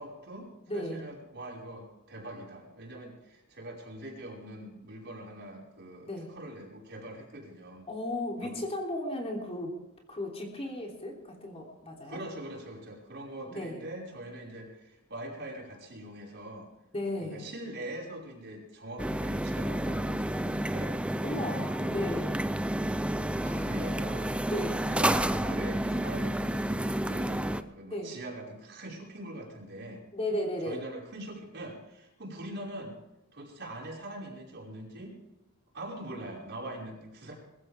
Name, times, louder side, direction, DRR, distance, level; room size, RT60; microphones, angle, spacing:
voice 1, 0.0-7.9 8.4-8.7 12.1-16.7 17.1-21.0 23.6-24.3 24.9-30.0 30.6-33.0 33.3-35.1 35.7-37.3, right 1 dB, 55° right, -2 dB, 5.4 m, -43 dB
voice 2, 0.7-1.0 6.1-6.3 7.9-9.8 10.1-12.2 13.5-13.8 16.9-17.6 21.2-22.3 23.4-23.8 24.5-24.8 27.9-28.1 30.1-30.9, left 1 dB, 30° left, 0 dB, 3.3 m, -35 dB
sound 1, 19.0-27.6, right 1 dB, 5° right, 0.5 m, -30 dB
21.5 x 15.0 x 3.6 m, 0.93 s
head